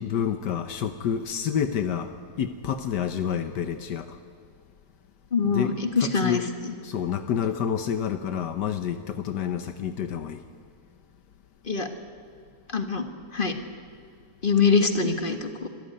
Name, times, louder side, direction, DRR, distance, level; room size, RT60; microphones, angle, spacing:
voice 1, 0.0-2.1 2.4-4.2 5.4-6.5 6.8-10.4, left 8 dB, 80° left, 9 dB, 1.5 m, -29 dB
voice 2, 5.3-6.4 11.7-11.9 12.7-13.1 13.3-13.5 14.4-15.7, left 5 dB, 30° left, 6 dB, 1.6 m, -23 dB
25.0 x 14.5 x 9.8 m, 2.1 s
omnidirectional pair, 1.8 m